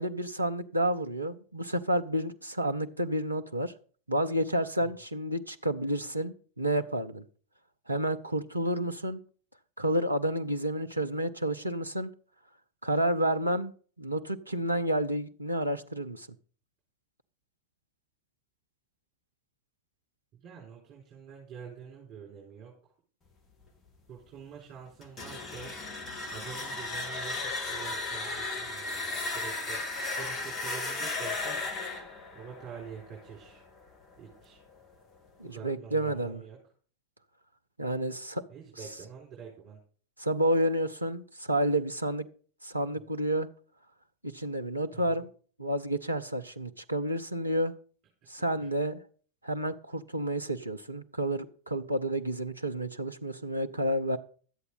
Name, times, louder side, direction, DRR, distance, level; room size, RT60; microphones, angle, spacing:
voice 1, 0.0-3.7 4.1-7.2 7.9-9.2 9.8-12.1 12.8-13.7 14.0-16.3 35.4-36.4 37.8-38.4 40.2-42.3 42.6-43.5 44.2-45.3 45.6-47.7 48.3-49.0 49.4-54.2, right 1 dB, 85° right, 7 dB, 0.7 m, -30 dB
voice 2, 20.4-22.9 24.1-25.7 26.3-29.8 30.2-31.6 32.3-33.6 34.2-34.6 35.4-36.6 38.5-39.8 44.9-45.2 48.6-48.7, right 7 dB, 35° right, -3 dB, 4.5 m, -46 dB
sound 1, 25.0-33.8, left 3 dB, 25° left, 1.7 m, -35 dB
12.0 x 8.1 x 5.4 m, 0.43 s
figure-of-eight pair, 90°, 0 cm